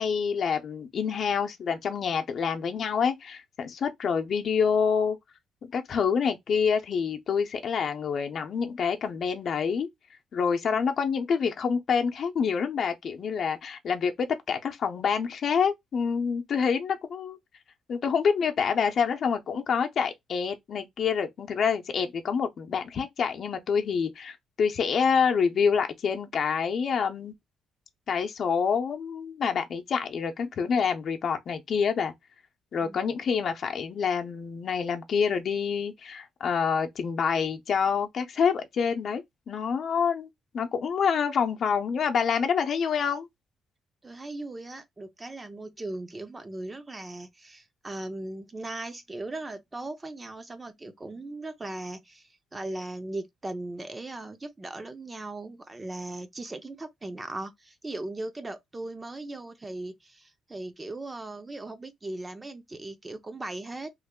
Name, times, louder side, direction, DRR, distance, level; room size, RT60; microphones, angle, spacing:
voice 1, 0.0-5.2 5.7-9.9 10.3-17.4 17.9-27.3 28.1-32.1 32.7-40.3 40.5-43.3, left 6 dB, 60° left, 0.7 m, -27 dB
voice 2, 44.0-63.9, right 2 dB, 20° right, 0.6 m, -38 dB
3.2 x 2.0 x 3.6 m
cardioid pair, 90°, 0 cm